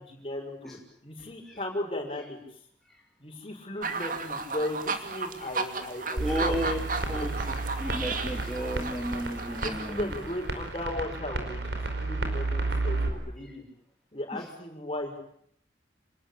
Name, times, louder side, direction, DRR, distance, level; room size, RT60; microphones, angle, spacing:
voice 1, 0.1-2.4 3.2-6.5 7.2-7.3 9.6-13.6 14.1-15.2, left 1 dB, 30° left, 2 dB, 6.4 m, -36 dB
sound 1, 3.8-10.6, right 4 dB, 45° right, 2.5 m, -35 dB
voice 2, 6.2-10.2 14.3-14.4, equal, ahead, -2 dB, 2.9 m, -34 dB
sound 2, 6.2-13.1, right 2 dB, 65° right, 5.0 m, -32 dB
28.0 x 20.0 x 8.7 m, 0.68 s
head